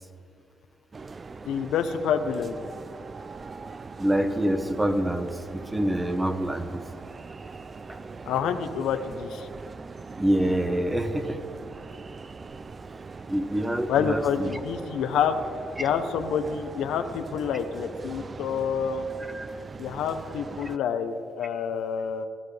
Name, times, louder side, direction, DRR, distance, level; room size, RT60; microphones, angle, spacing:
sound 1, 0.9-20.8, right 4 dB, 35° right, 0.5 m, -41 dB
voice 1, 1.5-2.6 8.2-9.5 13.9-15.4 15.8-19.0 19.8-22.3, left 7 dB, 85° left, 8 dB, 0.8 m, -28 dB
voice 2, 4.0-6.8 7.9-8.0 10.2-11.4 13.3-14.5 15.8-15.9 19.3-19.5, right 1 dB, 10° right, 8 dB, 1.1 m, -26 dB
18.5 x 12.0 x 3.3 m, 2.2 s
cardioid pair, 90°, 0 cm